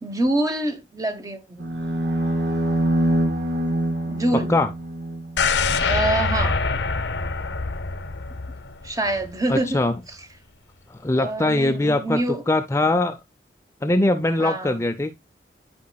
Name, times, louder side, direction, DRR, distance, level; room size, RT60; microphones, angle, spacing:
voice 1, 0.0-1.6 4.0-4.5 5.8-6.6 8.8-9.8 11.2-12.4 14.4-14.8, right 1 dB, 20° right, 1.0 m, -25 dB
sound 1, 1.6-5.9, right 1 dB, 70° right, 1.7 m, -25 dB
sound 2, 5.4-9.3 9.7-9.8, left 4 dB, 80° left, 0.8 m, -25 dB
voice 2, 9.5-10.0 10.9-13.2 13.8-15.1, left 2 dB, 15° left, 0.4 m, -22 dB
11.5 x 5.1 x 2.2 m
head